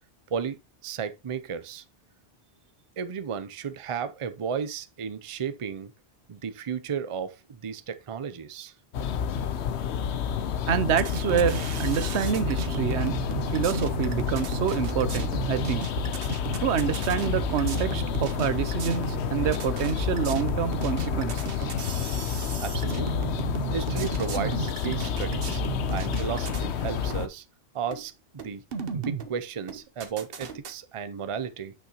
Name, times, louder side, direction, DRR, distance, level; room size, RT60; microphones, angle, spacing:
voice 1, 0.3-1.8 3.0-5.9 6.3-8.7 22.6-23.3 23.7-25.6 25.9-27.4 27.7-28.6 28.9-31.7, right 7 dB, 35° right, 0.6 m, -34 dB
sound 1, 8.9-27.3, left 7 dB, 85° left, 1.0 m, -30 dB
voice 2, 10.7-13.2 13.5-15.9 16.6-21.7, right 9 dB, 85° right, 1.0 m, -27 dB
sound 2, 10.9-26.7 27.1-27.2 27.9-28.0 28.4-29.3 29.7-30.7, right 5 dB, 60° right, 1.1 m, -35 dB
8.2 x 6.4 x 2.9 m
omnidirectional pair, 1.1 m